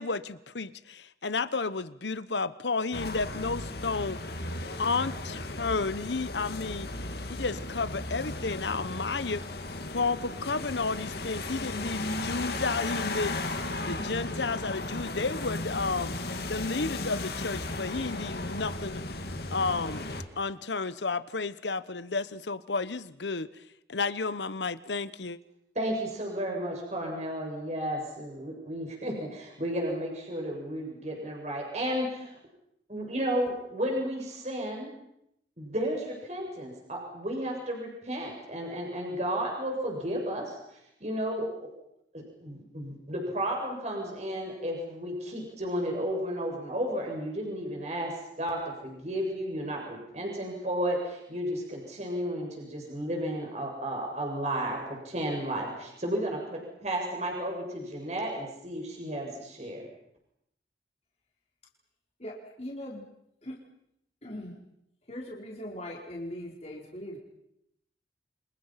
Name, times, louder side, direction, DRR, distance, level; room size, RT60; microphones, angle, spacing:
voice 1, 0.0-4.2 4.8-6.9 7.3-9.4 9.9-13.5 13.9-16.1 16.5-19.0 19.5-20.1 20.4-23.6 23.9-25.4, left 4 dB, 75° left, 15 dB, 1.1 m, -32 dB
sound 1, 2.9-20.2, left 2 dB, 60° left, 2.5 m, -35 dB
voice 2, 25.8-32.4 32.9-34.9 35.6-40.6 41.0-41.7 42.1-48.1 48.4-54.8 55.0-59.8, equal, 40° right, 0 dB, 7.1 m, -33 dB
voice 3, 62.2-63.0 63.4-63.6 64.2-64.6 65.1-67.2, left 1 dB, 35° left, -2 dB, 4.9 m, -40 dB
29.5 x 26.5 x 5.9 m, 0.78 s
head